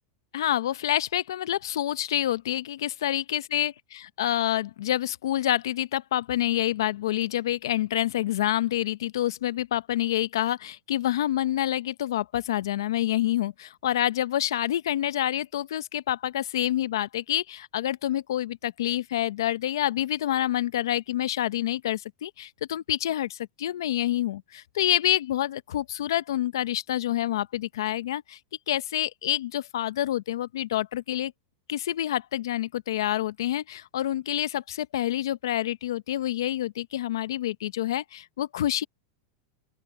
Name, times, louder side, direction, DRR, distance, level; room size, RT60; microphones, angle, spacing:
voice 1, 0.3-28.4 28.7-31.3 31.7-38.8, left 12 dB, 85° left, 0.7 m, -27 dB
open air
supercardioid pair, 145°, 2 cm